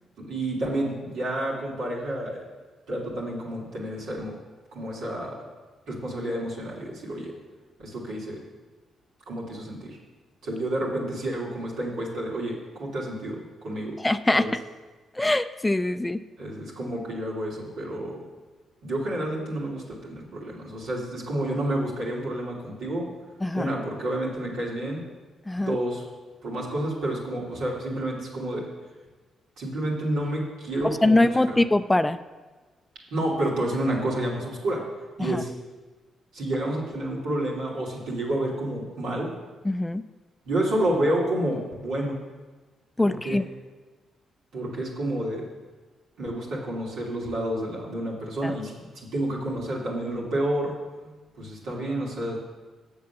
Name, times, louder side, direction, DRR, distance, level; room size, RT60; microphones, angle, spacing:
voice 1, 0.2-2.4 2.9-4.4 4.7-5.4 5.9-7.3 7.8-8.4 9.3-10.0 10.4-13.9 14.4-14.5 16.4-18.2 18.8-23.1 23.5-25.0 25.6-26.0 26.4-28.7 29.6-31.2 31.5-31.6 33.1-34.8 35.2-35.5 36.3-39.3 40.4-42.2 43.0-43.4 44.5-45.5 46.2-50.7 51.4-52.4, right 1 dB, 75° right, -5 dB, 2.9 m, -29 dB
voice 2, 14.0-14.5 15.1-16.2 23.4-23.7 25.5-25.8 30.8-32.2 35.2-35.4 39.6-40.0 43.0-43.4 48.4-48.5, left 2 dB, 15° left, 12 dB, 0.4 m, -23 dB
7.5 x 7.1 x 7.0 m, 1.3 s
hypercardioid pair, 45°, 0 cm